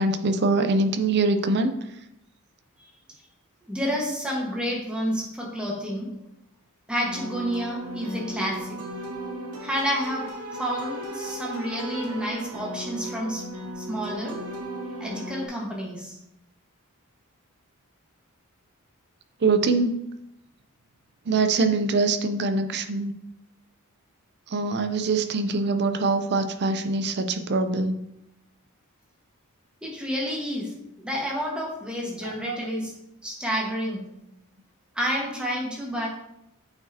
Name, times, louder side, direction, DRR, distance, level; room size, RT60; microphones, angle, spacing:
voice 1, 0.0-1.7 19.4-20.0 21.3-23.1 24.5-28.0 32.2-32.6, right 3 dB, 50° right, 9 dB, 0.5 m, -23 dB
voice 2, 3.7-6.1 6.9-8.8 9.6-10.3 10.6-13.4 13.7-14.4 15.0-16.2 29.8-32.9 33.2-34.1 34.9-36.1, equal, 5° right, -3 dB, 1.4 m, -29 dB
sound 1, 7.1-15.5, right 1 dB, 80° right, 1.2 m, -36 dB
8.7 x 4.7 x 2.8 m, 0.83 s
head